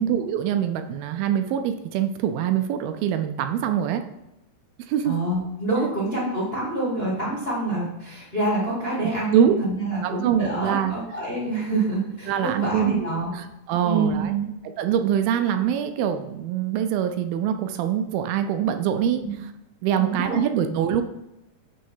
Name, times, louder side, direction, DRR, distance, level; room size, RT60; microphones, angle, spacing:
voice 1, 0.0-4.0 4.9-5.2 5.8-5.9 9.3-9.6 10.0-10.9 12.3-13.0 13.4-14.3 14.8-19.2 19.8-21.0, right 9 dB, 80° right, 7 dB, 2.2 m, -24 dB
voice 2, 5.0-13.4 13.8-14.5 19.2-19.3 19.9-20.4 20.7-20.8, right 2 dB, 85° left, -5 dB, 0.5 m, -26 dB
8.5 x 3.1 x 5.6 m, 0.91 s
omnidirectional pair, 4.3 m